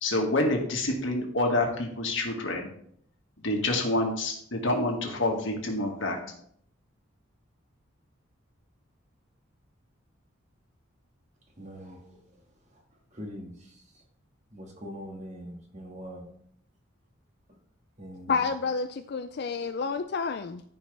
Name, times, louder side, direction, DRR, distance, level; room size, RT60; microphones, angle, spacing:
voice 1, 0.0-2.7 3.4-6.2, left 2 dB, 65° left, 1 dB, 1.9 m, -27 dB
voice 2, 11.6-12.1 13.1-13.8 14.5-16.3 17.5-17.6 18.0-18.5, equal, 35° right, 1 dB, 1.8 m, -42 dB
voice 3, 18.3-20.6, left 5 dB, 50° left, 9 dB, 0.3 m, -29 dB
14.0 x 5.3 x 3.4 m, 0.66 s
head